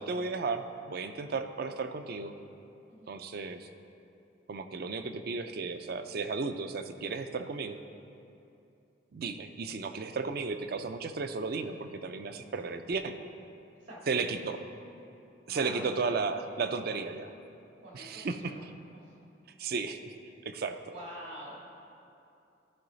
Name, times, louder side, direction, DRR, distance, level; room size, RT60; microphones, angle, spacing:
voice 1, 0.0-2.3 3.1-3.7 4.5-7.8 9.1-13.2 14.1-14.6 15.5-17.3 17.9-18.5 19.6-20.1 20.5-20.8, right 4 dB, 55° right, 9 dB, 0.4 m, -34 dB
voice 2, 15.5-15.8 17.8-18.6 18.9-19.2 19.6-19.7 20.6-21.6, equal, 75° right, -4 dB, 2.2 m, -47 dB
13.5 x 4.8 x 4.0 m, 2.7 s
head